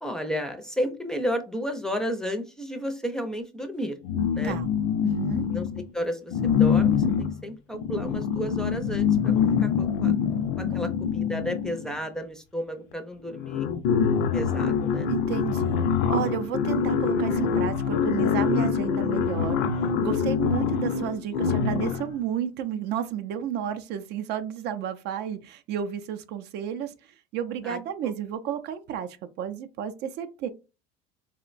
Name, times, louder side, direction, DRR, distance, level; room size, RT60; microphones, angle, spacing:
voice 1, 0.0-4.0 4.3-4.6 5.5-5.7 5.9-10.1 10.6-13.7 14.3-15.1 27.6-27.8 28.0-28.1, equal, 5° left, 0.4 m, -32 dB
sound 1, 4.0-5.8 6.3-12.0 12.9-13.0 13.3-22.2, left 7 dB, 75° left, 0.5 m, -25 dB
voice 2, 5.0-5.4 15.1-15.8 16.1-19.6 20.0-26.9 27.3-29.1 29.4-30.5, right 9 dB, 60° right, 0.4 m, -31 dB
3.6 x 2.1 x 2.4 m
cardioid pair, 115°, 20 cm